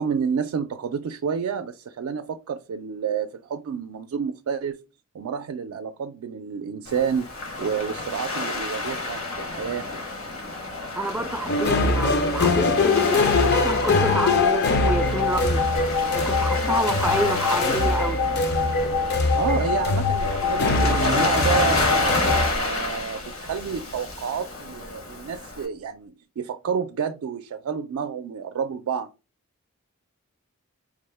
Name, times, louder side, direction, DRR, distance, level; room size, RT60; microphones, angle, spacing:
voice 1, 0.0-4.8 5.1-7.3 7.6-9.9 19.4-29.1, right 6 dB, 85° right, 0.3 m, -29 dB
Waves surf, 6.9-25.7, left 2 dB, 65° left, 1.1 m, -30 dB
voice 2, 10.9-15.6 16.1-18.2, right 1 dB, 10° right, 0.3 m, -29 dB
sound 1, 11.5-22.5, left 3 dB, 50° left, 0.5 m, -22 dB
sound 2, 21.7-26.1, left 1 dB, 90° left, 1.8 m, -40 dB
4.7 x 2.1 x 3.3 m
head